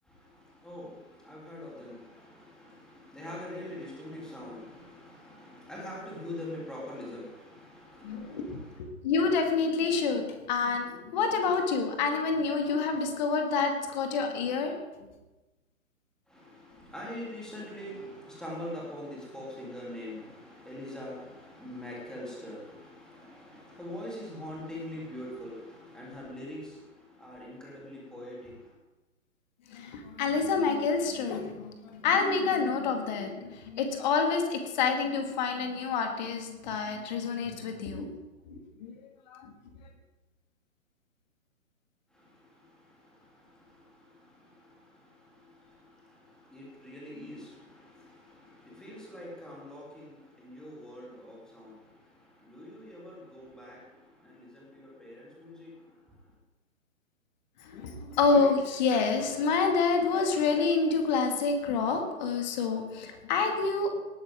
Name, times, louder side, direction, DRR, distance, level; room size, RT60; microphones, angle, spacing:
voice 1, 0.0-8.8 16.3-28.7 42.1-56.3, left 1 dB, ahead, -5 dB, 3.2 m, -44 dB
voice 2, 8.0-8.5 9.0-15.1 29.7-38.1 38.5-39.5 57.6-64.0, left 4 dB, 35° left, 4 dB, 2.2 m, -28 dB
19.0 x 11.0 x 3.7 m, 1.1 s
figure-of-eight pair, 130°, 41 cm